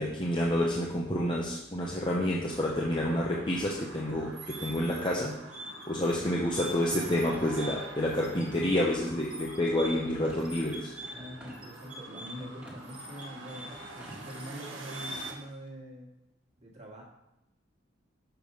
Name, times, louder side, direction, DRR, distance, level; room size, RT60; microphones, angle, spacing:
voice 1, 0.0-5.4 5.9-10.9, left 1 dB, 25° left, -3 dB, 0.8 m, -29 dB
sound 1, 2.5-15.3, right 3 dB, 80° right, 1.4 m, -46 dB
sound 2, 4.3-15.5, equal, 5° right, 1.5 m, -44 dB
voice 2, 11.1-16.1 16.6-17.0, equal, 35° right, -1 dB, 1.7 m, -44 dB
6.8 x 4.8 x 5.3 m, 0.90 s
head